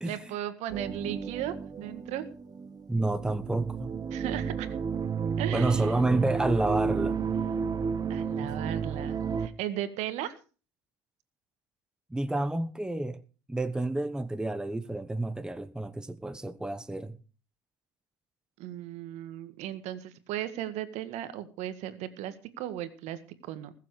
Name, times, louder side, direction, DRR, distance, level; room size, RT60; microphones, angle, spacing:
voice 1, 0.0-2.3 4.1-4.8 5.4-6.0 8.1-10.3 18.6-23.7, right 12 dB, 60° right, 1.8 m, -36 dB
sound 1, 0.7-9.5, right 6 dB, 30° right, 1.2 m, -32 dB
voice 2, 2.9-3.9 5.5-7.2 8.4-8.5 12.1-13.2 13.5-17.2, right 2 dB, 5° right, 1.1 m, -29 dB
20.5 x 7.6 x 4.9 m
hypercardioid pair, 80°, 13 cm